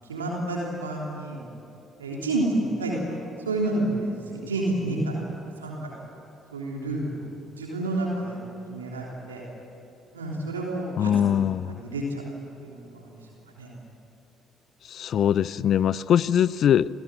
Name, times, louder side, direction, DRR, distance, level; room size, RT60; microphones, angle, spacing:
voice 1, 0.1-1.4 2.0-2.9 3.4-5.2 5.6-5.9 6.5-7.2 7.6-8.4 8.7-9.4 10.1-11.4 11.7-12.2 12.6-13.1 13.6-13.7, right 2 dB, 90° right, -2 dB, 3.4 m, -29 dB
voice 2, 11.0-11.8 14.9-16.9, left 9 dB, 55° left, 20 dB, 0.5 m, -22 dB
28.5 x 17.0 x 9.2 m, 2.7 s
hypercardioid pair, 50°, 0 cm